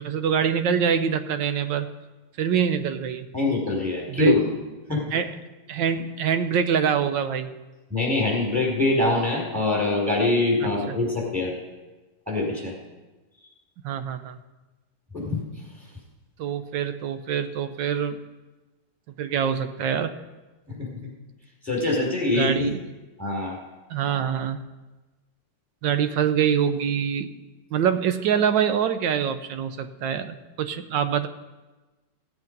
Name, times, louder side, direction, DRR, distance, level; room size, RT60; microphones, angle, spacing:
voice 1, 0.0-1.9 2.4-3.3 4.1-4.4 5.1-5.3 5.7-7.5 10.6-11.0 13.8-14.4 16.4-18.2 19.2-20.1 22.3-22.8 23.9-24.6 25.8-27.3 27.7-31.3, right 8 dB, 85° right, 10 dB, 1.4 m, -25 dB
voice 2, 3.3-4.4 4.9-5.1 7.9-11.5 12.3-12.7 15.1-15.4 20.7-20.9 21.6-22.7 23.2-23.6, left 2 dB, 10° right, -3 dB, 4.2 m, -24 dB
16.0 x 8.0 x 5.3 m, 1.2 s
omnidirectional pair, 1.9 m